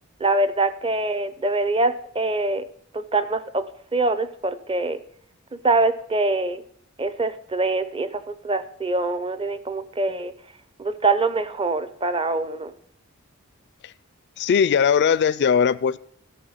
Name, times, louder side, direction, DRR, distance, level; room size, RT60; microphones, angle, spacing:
voice 1, 0.2-2.6 3.1-3.6 3.9-5.0 5.5-6.6 7.0-10.3 10.8-12.7, right 2 dB, 25° right, 12 dB, 0.6 m, -24 dB
voice 2, 14.4-16.0, left 7 dB, 55° left, 17 dB, 0.3 m, -19 dB
13.5 x 5.7 x 5.6 m, 0.62 s
head